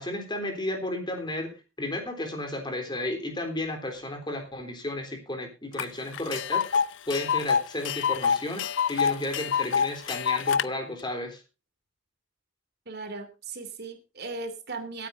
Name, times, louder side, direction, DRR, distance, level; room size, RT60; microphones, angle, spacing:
voice 1, 0.0-11.4, left 1 dB, 25° left, 5 dB, 3.5 m, -33 dB
Tick, 5.8-5.9 6.1-10.7, left 7 dB, 70° left, 0.6 m, -26 dB
voice 2, 12.9-15.1, right 3 dB, 55° right, 7 dB, 2.8 m, -37 dB
23.0 x 9.4 x 2.6 m, 0.29 s
head